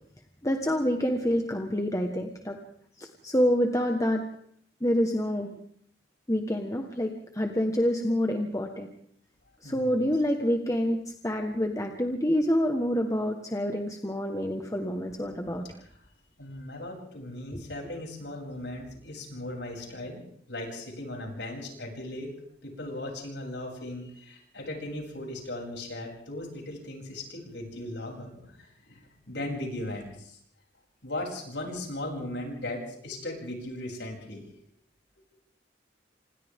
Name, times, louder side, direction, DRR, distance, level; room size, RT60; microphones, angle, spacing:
voice 1, 0.4-2.6 3.0-4.2 4.8-5.5 6.3-8.9 9.6-15.6 17.5-17.6, equal, 20° left, 3 dB, 1.5 m, -27 dB
voice 2, 9.6-10.1 16.4-22.3 22.6-30.4 31.0-34.4, left 1 dB, 80° left, 0 dB, 7.8 m, -38 dB
29.5 x 26.5 x 3.7 m, 0.65 s
head